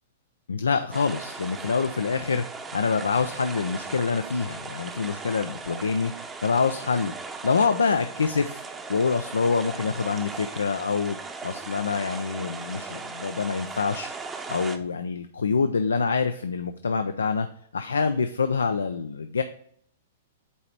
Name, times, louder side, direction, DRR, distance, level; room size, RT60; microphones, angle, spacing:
voice 1, 0.5-7.1 7.4-8.6 8.9-11.2 11.4-14.1 14.5-17.5 17.7-19.4, left 5 dB, 85° left, 8 dB, 0.4 m, -26 dB
sound 1, 0.9-14.8, right 4 dB, 15° right, 0.7 m, -38 dB
8.2 x 2.9 x 4.5 m, 0.64 s
hypercardioid pair, 115°, 0 cm